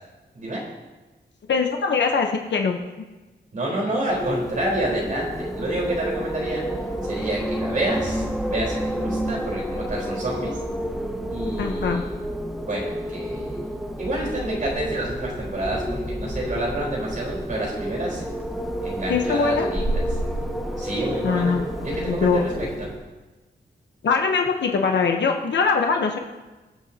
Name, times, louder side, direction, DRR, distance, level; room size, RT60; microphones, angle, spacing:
voice 1, 1.5-2.8 11.6-12.0 19.1-19.7 21.2-22.4 24.0-26.2, left 5 dB, 75° left, 3 dB, 1.0 m, -22 dB
voice 2, 3.5-6.6 7.0-10.5 11.3-12.2 12.7-13.7 14.0-18.3 18.8-20.0 20.8-21.6 21.8-22.5 22.8-22.9, right 1 dB, 45° right, -4 dB, 4.3 m, -28 dB
Wind, 4.1-23.1, equal, ahead, 1.0 m, -29 dB
24.5 x 8.4 x 2.9 m, 1.2 s
wide cardioid pair, 170°, 18 cm